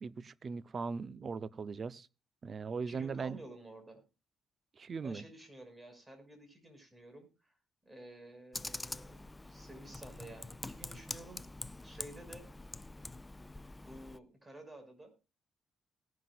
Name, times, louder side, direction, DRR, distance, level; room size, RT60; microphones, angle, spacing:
voice 1, 0.0-2.1 2.4-3.4 4.8-5.2, right 5 dB, 45° right, 0.8 m, -39 dB
voice 2, 2.9-4.0 5.0-7.6 7.9-11.4 11.8-12.5 13.8-15.1, right 1 dB, 15° right, 5.5 m, -52 dB
Computer keyboard, 8.5-14.2, left 2 dB, 15° left, 0.5 m, -45 dB
19.0 x 11.0 x 2.5 m
cardioid pair, 90°, 0 cm